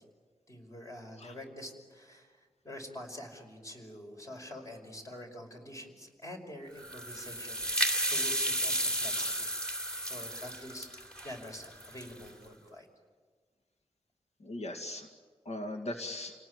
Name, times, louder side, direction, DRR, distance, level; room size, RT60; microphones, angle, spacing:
voice 1, 0.5-2.3 2.6-9.3 10.0-12.9, left 1 dB, 30° left, 3 dB, 5.3 m, -46 dB
sound 1, 6.8-12.3, right 1 dB, 10° left, 2.8 m, -33 dB
voice 2, 14.4-15.1 15.5-16.3, left 1 dB, 80° left, 4 dB, 2.1 m, -40 dB
30.0 x 18.5 x 9.6 m, 1.6 s
wide cardioid pair, 130°, 11 cm